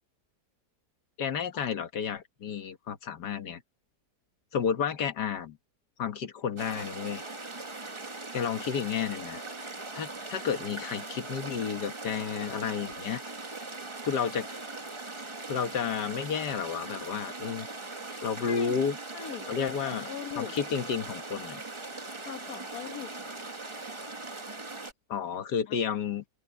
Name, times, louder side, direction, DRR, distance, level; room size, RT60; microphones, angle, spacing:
voice 1, 1.2-3.6 4.5-5.6 6.0-7.2 8.3-9.4 9.9-13.2 14.0-14.5 15.5-17.7 18.2-19.0 19.5-20.1 20.4-21.6 25.1-26.2, left 7 dB, 90° left, 1.9 m, -31 dB
sound 1, 6.6-24.9, right 3 dB, 20° right, 1.1 m, -40 dB
voice 2, 18.5-18.8 19.1-20.8 22.3-23.3 25.7-25.8, left 9 dB, 65° left, 1.7 m, -41 dB
open air
omnidirectional pair, 1.7 m